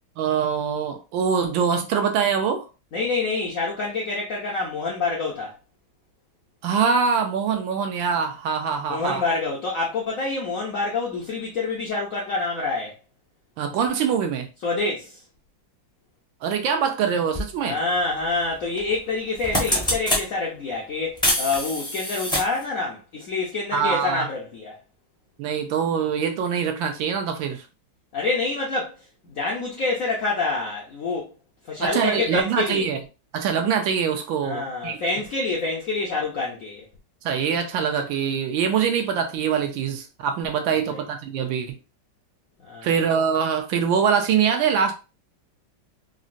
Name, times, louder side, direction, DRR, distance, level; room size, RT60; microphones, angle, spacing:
voice 1, 0.2-2.7 6.6-9.2 13.6-14.5 16.4-17.8 23.7-24.3 25.4-27.6 31.8-33.0 33.3-35.0 37.2-41.8 42.8-45.0, right 7 dB, 75° right, 1.3 m, -23 dB
voice 2, 2.9-5.6 8.9-12.9 14.6-15.2 17.6-24.8 28.1-31.3 31.6-32.9 34.4-36.8 40.9-41.0 42.6-42.9, left 3 dB, 70° left, 0.8 m, -27 dB
sound 1, 17.3-17.5 18.8-19.0 19.3-20.2 21.2-22.6, left 1 dB, 5° left, 0.4 m, -24 dB
3.8 x 2.1 x 2.5 m
omnidirectional pair, 2.2 m